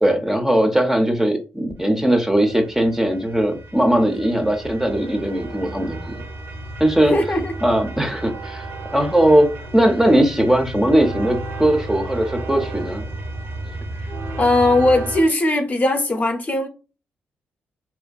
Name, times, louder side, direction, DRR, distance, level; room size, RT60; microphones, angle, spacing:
voice 1, 0.0-6.2 6.8-7.2 7.6-13.1, right 1 dB, 10° right, 0.5 m, -19 dB
sound 1, 2.0-15.2, right 2 dB, 60° right, 0.5 m, -33 dB
voice 2, 7.1-7.5 14.4-16.7, left 2 dB, 35° left, 0.6 m, -19 dB
2.5 x 2.1 x 2.3 m
supercardioid pair, 55°, 5 cm